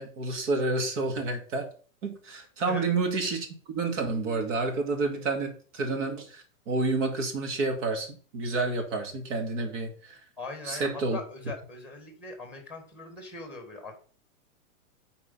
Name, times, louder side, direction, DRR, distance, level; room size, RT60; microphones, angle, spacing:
voice 1, 0.0-1.7 2.0-3.5 3.7-10.2 10.7-11.2, right 3 dB, 60° right, 4 dB, 2.4 m, -29 dB
voice 2, 10.4-13.9, left 3 dB, 5° right, 5 dB, 1.9 m, -40 dB
8.3 x 4.3 x 5.5 m, 0.41 s
hypercardioid pair, 150°, 41 cm